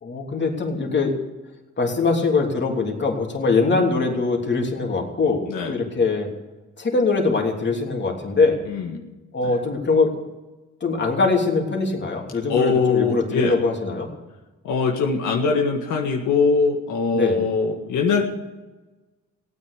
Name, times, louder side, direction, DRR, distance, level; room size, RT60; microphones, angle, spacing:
voice 1, 0.0-1.1 1.8-6.3 6.8-8.6 9.3-10.1 10.8-14.1 17.1-17.4, left 4 dB, 35° left, 1 dB, 3.2 m, -22 dB
voice 2, 5.5-5.8 8.7-9.0 9.4-9.6 12.5-13.6 14.6-18.2, left 4 dB, 80° left, 1 dB, 1.9 m, -22 dB
17.0 x 9.4 x 8.4 m, 1.1 s
cardioid pair, 90°, 30 cm